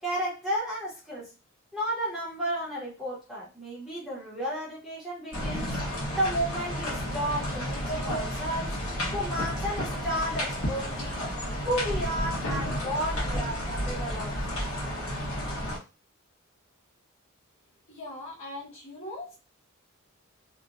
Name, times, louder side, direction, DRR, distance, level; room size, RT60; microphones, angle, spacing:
voice 1, 0.0-1.3 1.7-8.8 9.1-11.3 11.6-14.4, equal, ahead, -8 dB, 1.0 m, -33 dB
sound 1, 5.3-15.8, equal, 85° left, 1.1 m, -31 dB
voice 2, 17.9-19.4, left 1 dB, 70° left, -6 dB, 1.4 m, -40 dB
2.8 x 2.3 x 2.5 m, 0.32 s
head